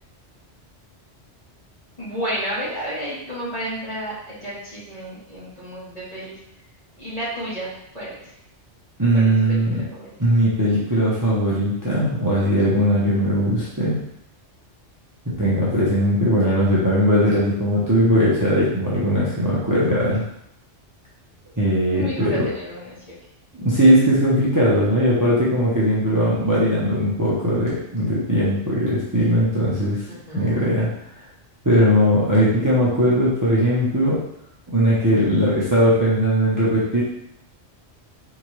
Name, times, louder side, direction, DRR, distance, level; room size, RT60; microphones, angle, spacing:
voice 1, 2.0-6.4 7.0-8.3 9.1-10.1 21.9-23.2 30.1-30.7, right 1 dB, 30° left, -8 dB, 1.8 m, -32 dB
voice 2, 9.0-9.8 10.2-14.0 15.4-20.2 21.6-22.4 23.6-30.0 30.3-30.9 31.6-34.2 34.7-37.0, equal, 15° right, -8 dB, 0.9 m, -19 dB
4.3 x 3.8 x 3.2 m, 0.76 s
omnidirectional pair, 1.2 m